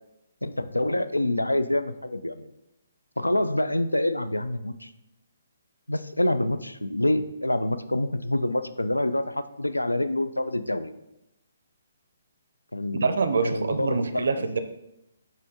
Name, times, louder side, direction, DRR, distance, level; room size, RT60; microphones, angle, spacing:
voice 1, 0.4-2.5 3.2-4.9 5.9-10.9 12.7-13.1 13.4-14.4, left 1 dB, 90° left, 11 dB, 0.3 m, -26 dB
voice 2, 12.9-14.6, right 4 dB, 65° right, 10 dB, 0.5 m, -25 dB
5.8 x 4.4 x 3.7 m, 0.87 s
figure-of-eight pair, 135°, 0 cm